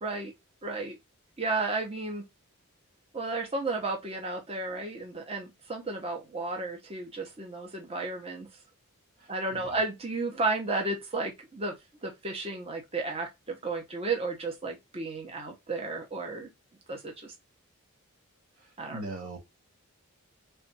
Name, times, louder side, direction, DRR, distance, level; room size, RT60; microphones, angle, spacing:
voice 1, 0.0-0.3 0.6-1.0 1.4-2.2 3.1-8.5 9.3-11.7 12.0-16.5 16.9-17.3 18.8-19.0, right 3 dB, 25° right, 0.8 m, -33 dB
voice 2, 9.2-9.8 18.6-19.4, right 2 dB, 70° right, 1.3 m, -41 dB
3.3 x 2.5 x 4.0 m
head